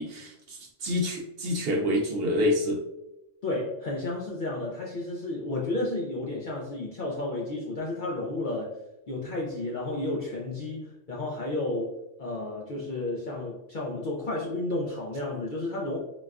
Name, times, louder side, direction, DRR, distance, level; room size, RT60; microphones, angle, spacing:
voice 1, 0.0-2.8, left 1 dB, 60° right, 1 dB, 0.7 m, -27 dB
voice 2, 3.4-8.7 9.1-16.0, left 2 dB, 60° left, -3 dB, 0.5 m, -32 dB
3.9 x 2.2 x 2.4 m, 0.92 s
omnidirectional pair, 1.3 m